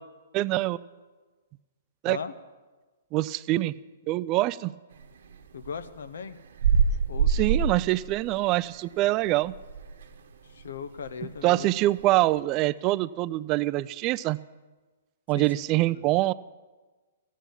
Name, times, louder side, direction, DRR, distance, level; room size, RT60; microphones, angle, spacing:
voice 1, 0.3-0.8 2.0-2.2 3.1-3.7 4.1-4.7 7.3-9.5 11.4-14.4 15.3-16.3, right 17 dB, 35° right, 17 dB, 0.4 m, -25 dB
sound 1, 5.0-10.2 10.6-10.7 11.0-12.4, right 6 dB, 70° right, 1.3 m, -26 dB
voice 2, 5.5-6.4 7.1-7.4 10.5-11.7 15.3-15.6 16.0-16.1, left 6 dB, 75° left, 11 dB, 1.0 m, -38 dB
14.5 x 9.2 x 8.4 m, 1.3 s
hypercardioid pair, 130°, 0 cm